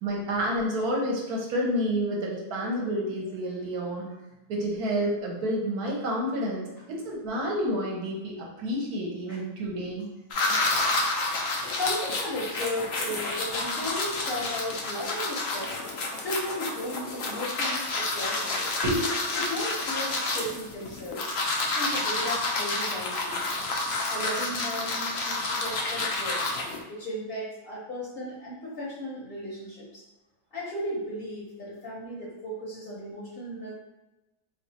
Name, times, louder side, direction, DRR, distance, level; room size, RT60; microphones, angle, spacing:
voice 1, 0.0-4.1 4.5-10.1 18.8-19.1, equal, 70° right, -2 dB, 1.3 m, -29 dB
sound 1, 10.3-26.8, left 2 dB, 75° left, 0.5 m, -29 dB
voice 2, 11.3-15.7 16.1-18.8 19.3-21.2 21.7-23.5 24.1-26.4 26.9-30.0 30.5-33.7, left 1 dB, 45° left, -6 dB, 0.8 m, -35 dB
3.1 x 2.4 x 4.0 m, 1.0 s
omnidirectional pair, 1.7 m